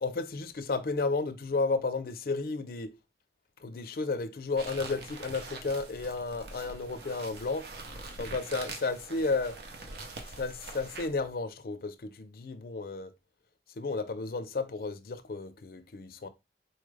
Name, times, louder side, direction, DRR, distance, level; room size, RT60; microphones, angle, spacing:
voice 1, 0.0-2.9 3.6-7.7 8.2-9.6 10.4-13.1 13.8-16.3, left 3 dB, 55° left, 0.4 m, -33 dB
sound 1, 4.5-11.2, right 3 dB, 65° right, 0.6 m, -44 dB
4.2 x 2.4 x 3.1 m
head